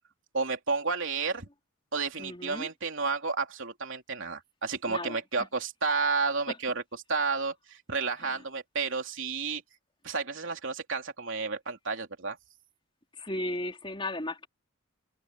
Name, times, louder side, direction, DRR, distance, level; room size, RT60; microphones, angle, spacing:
voice 1, 0.3-1.5 1.9-6.8 7.1-9.6 10.0-12.4, right 4 dB, 60° right, 3.4 m, -31 dB
voice 2, 2.2-2.7 4.9-5.2 6.5-6.6 13.2-14.5, left 1 dB, 25° left, 3.8 m, -35 dB
head